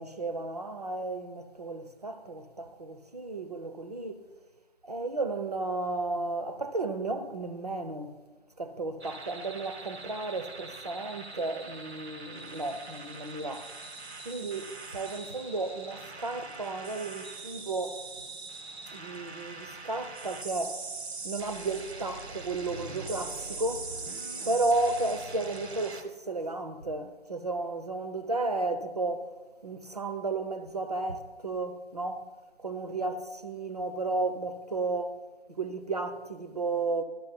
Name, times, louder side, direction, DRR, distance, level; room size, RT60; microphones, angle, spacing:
voice 1, 0.0-4.2 4.8-8.1 8.6-13.7 14.2-18.0 18.9-20.8 21.2-23.9 24.5-29.3 29.6-32.3 32.6-35.2 35.5-37.0, right 2 dB, 35° right, 0.5 m, -33 dB
sound 1, 9.0-26.0, right 3 dB, 75° right, 1.0 m, -42 dB
11.0 x 5.8 x 4.0 m
figure-of-eight pair, 165°, 34 cm